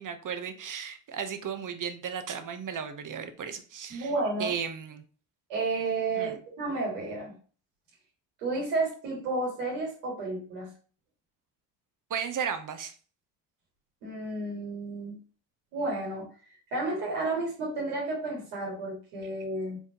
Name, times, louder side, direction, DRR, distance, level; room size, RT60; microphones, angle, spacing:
voice 1, 0.0-4.1 4.4-5.0 6.2-6.4 12.1-12.9, right 7 dB, 40° right, 9 dB, 0.9 m, -35 dB
voice 2, 3.9-4.5 5.5-7.3 8.4-10.7 14.0-15.2 15.7-16.3 16.7-19.8, right 3 dB, 90° right, -3 dB, 2.0 m, -31 dB
4.5 x 3.6 x 2.8 m, 0.39 s
supercardioid pair, 60°, 47 cm